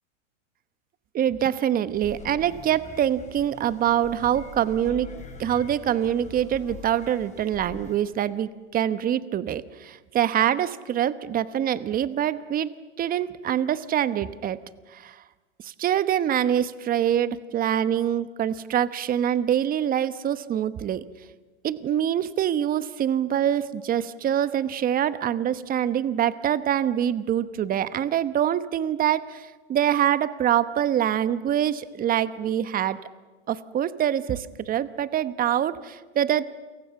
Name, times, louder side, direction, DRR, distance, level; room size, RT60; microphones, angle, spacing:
voice 1, 1.1-5.1 5.4-12.7 13.0-14.6 14.9-15.2 15.6-21.0 21.6-33.0 33.5-36.5, right 10 dB, 20° right, 15 dB, 1.1 m, -25 dB
sound 1, 1.9-8.0, left 4 dB, 20° left, 4.7 m, -43 dB
29.0 x 23.5 x 7.2 m, 1.3 s
hypercardioid pair, 125°, 38 cm